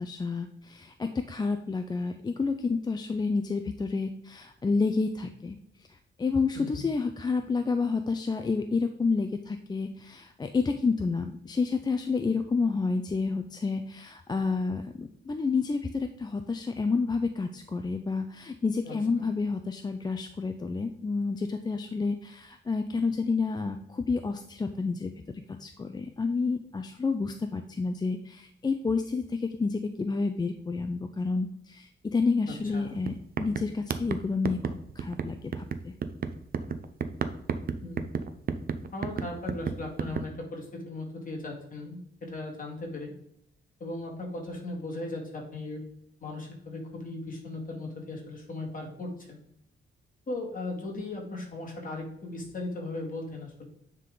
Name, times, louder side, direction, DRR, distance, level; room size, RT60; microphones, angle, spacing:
voice 1, 0.0-25.1 25.5-35.9, left 4 dB, 20° left, 7 dB, 0.4 m, -30 dB
sound 1, 32.6-32.8 33.0-40.3, right 6 dB, 45° right, 0.5 m, -32 dB
voice 2, 38.9-43.1 43.8-45.8 46.2-49.4 50.3-53.6, left 2 dB, 40° left, -1 dB, 2.1 m, -37 dB
9.2 x 3.7 x 3.8 m, 0.74 s
wide cardioid pair, 130°, 21 cm